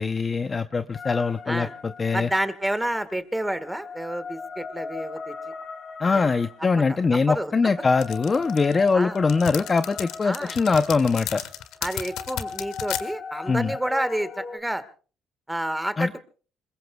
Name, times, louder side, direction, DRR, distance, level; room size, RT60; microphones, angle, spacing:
voice 1, 0.0-2.3 6.0-11.4 13.5-13.7 16.0-16.2, left 4 dB, 25° left, 9 dB, 0.7 m, -22 dB
sound 1, 0.9-2.5 3.5-14.6, left 4 dB, 45° left, 2.7 m, -39 dB
voice 2, 2.1-5.5 6.9-7.5 8.9-9.2 10.2-10.5 11.8-14.8 15.5-16.2, right 1 dB, 5° right, 12 dB, 1.5 m, -29 dB
sound 2, 8.0-13.0, left 11 dB, 85° left, 1.6 m, -33 dB
26.5 x 21.5 x 2.3 m, 0.39 s
cardioid pair, 125°, 0 cm